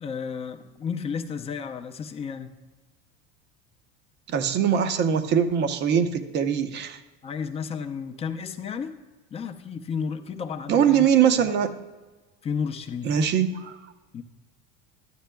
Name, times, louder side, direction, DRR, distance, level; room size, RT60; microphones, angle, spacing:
voice 1, 0.0-2.5 7.2-8.9 9.3-11.1 11.4-11.5 12.4-13.1 14.1-14.2, left 6 dB, 20° left, 5 dB, 0.6 m, -32 dB
voice 2, 4.3-7.0 10.7-11.8 13.0-13.8, right 8 dB, 35° right, 10 dB, 0.7 m, -22 dB
12.5 x 9.2 x 2.2 m, 1.2 s
supercardioid pair, 140°, 29 cm